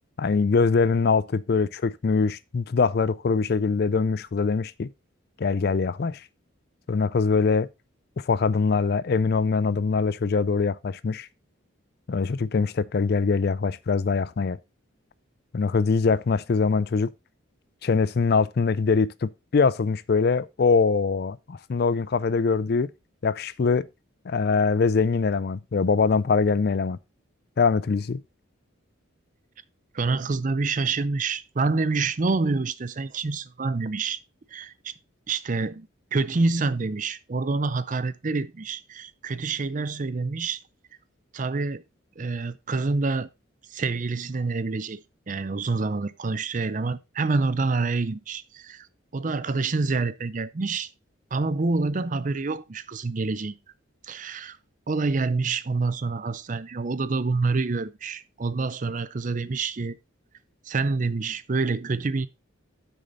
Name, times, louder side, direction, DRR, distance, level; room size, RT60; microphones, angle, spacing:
voice 1, 0.2-4.9 5.4-6.2 6.9-7.7 8.3-11.3 12.1-14.6 15.5-17.1 17.8-22.9 23.2-23.9 24.3-27.0 27.6-28.2, left 4 dB, 50° left, 0.4 m, -23 dB
voice 2, 29.9-34.2 34.5-34.9 35.3-40.6 41.3-41.8 42.2-43.3 43.7-48.9 49.1-50.9 51.3-53.6 54.1-54.6 54.9-60.0 60.7-62.3, right 3 dB, 40° right, 0.5 m, -27 dB
8.1 x 6.5 x 3.9 m
head